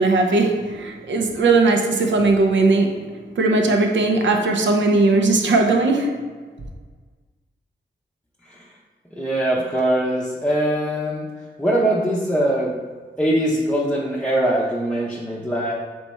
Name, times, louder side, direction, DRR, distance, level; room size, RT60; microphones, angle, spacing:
voice 1, 0.0-3.1 3.4-6.2, right 3 dB, 75° right, 3 dB, 0.6 m, -18 dB
voice 2, 9.1-11.3 11.6-12.7 13.2-15.7, right 1 dB, 5° left, -6 dB, 0.6 m, -22 dB
3.3 x 3.1 x 4.1 m, 1.5 s
cardioid pair, 60°, 19 cm